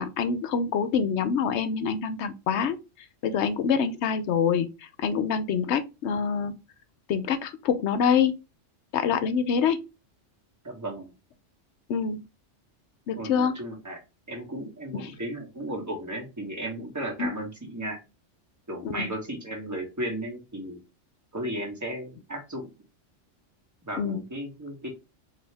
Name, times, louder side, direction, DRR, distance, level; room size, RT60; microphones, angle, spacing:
voice 1, 0.0-2.8 3.2-4.7 5.0-6.5 7.1-8.3 8.9-9.8 11.9-12.2 13.1-13.6 15.0-15.1 17.2-17.3 18.8-19.1 24.0-24.2, left 6 dB, 65° left, 0.9 m, -25 dB
voice 2, 10.6-11.1 13.2-14.0 14.3-18.0 18.7-20.8 21.3-22.7 23.8-24.9, right 1 dB, 15° right, 1.4 m, -35 dB
4.3 x 2.8 x 3.3 m
omnidirectional pair, 1.3 m